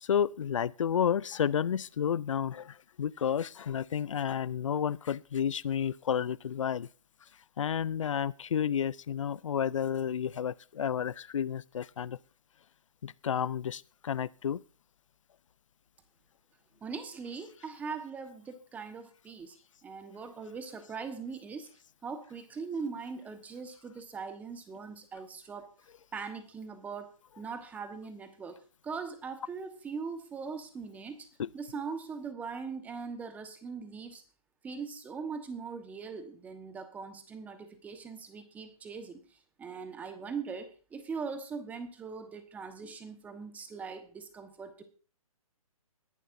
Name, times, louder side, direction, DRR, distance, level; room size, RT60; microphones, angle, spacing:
voice 1, 0.0-6.9 7.6-12.2 13.0-14.6 31.4-31.5, left 8 dB, 60° left, 0.5 m, -31 dB
voice 2, 16.8-19.5 19.8-21.7 22.0-25.7 26.1-27.1 27.4-28.6 28.8-31.2 31.5-34.2 34.6-39.2 39.6-44.8, right 5 dB, 10° right, 1.2 m, -40 dB
20.5 x 11.0 x 2.6 m
figure-of-eight pair, 145°, 18 cm